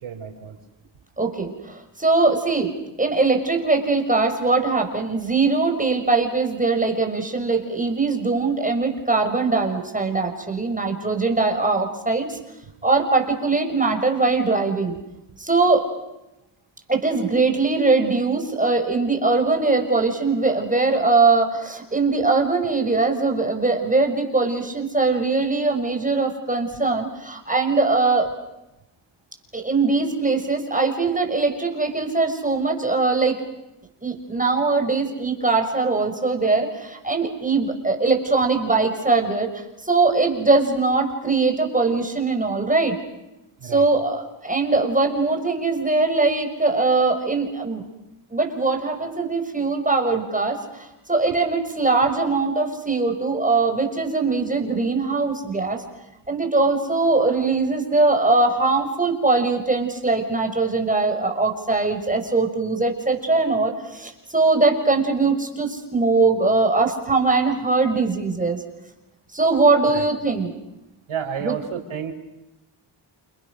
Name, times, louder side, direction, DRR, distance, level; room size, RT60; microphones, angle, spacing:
voice 1, 0.0-0.6 22.8-23.0 43.6-43.9 69.9-70.1 71.1-72.1, right 8 dB, 75° right, 6 dB, 4.4 m, -31 dB
voice 2, 1.2-12.4 12.8-14.9 15.4-15.8 16.9-28.3 29.5-33.4 34.0-43.0 43.6-47.8 48.3-55.8 56.3-68.6 69.3-70.5 71.4-71.6, right 3 dB, 15° right, 3 dB, 6.2 m, -21 dB
30.0 x 28.5 x 6.5 m, 0.94 s
cardioid pair, 75°, 49 cm